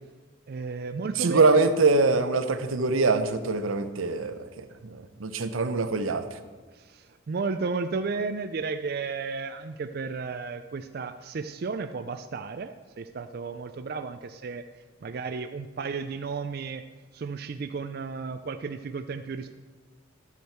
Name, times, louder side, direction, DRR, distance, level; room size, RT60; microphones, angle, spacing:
voice 1, 0.5-1.6 6.7-14.7 15.0-16.8 17.1-19.5, right 4 dB, 50° right, 9 dB, 0.4 m, -33 dB
voice 2, 1.2-6.3, right 3 dB, 90° right, 10 dB, 0.7 m, -24 dB
12.0 x 8.4 x 4.5 m, 1.4 s
head